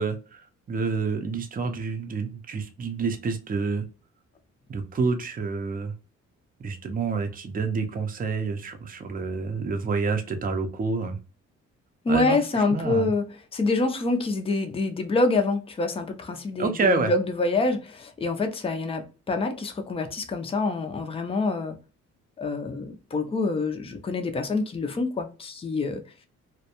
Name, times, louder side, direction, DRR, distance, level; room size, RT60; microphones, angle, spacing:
voice 1, 0.0-3.8 4.7-5.9 6.6-11.2 12.1-13.1 16.6-17.1, right 4 dB, 30° right, 0.5 m, -28 dB
voice 2, 12.0-21.8 22.4-26.0, left 3 dB, 20° left, 0.5 m, -26 dB
2.3 x 2.1 x 2.8 m
cardioid pair, 90°, 30 cm